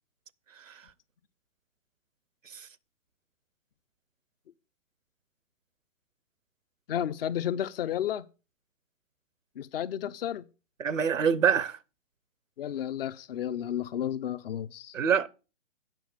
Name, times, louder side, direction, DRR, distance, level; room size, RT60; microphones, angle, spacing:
voice 1, 6.9-8.3 9.6-10.5 12.6-14.9, left 10 dB, 50° left, 0.7 m, -32 dB
voice 2, 10.8-11.8 14.9-15.3, right 7 dB, 90° right, 0.7 m, -25 dB
9.2 x 5.3 x 6.5 m
figure-of-eight pair, 120°, 38 cm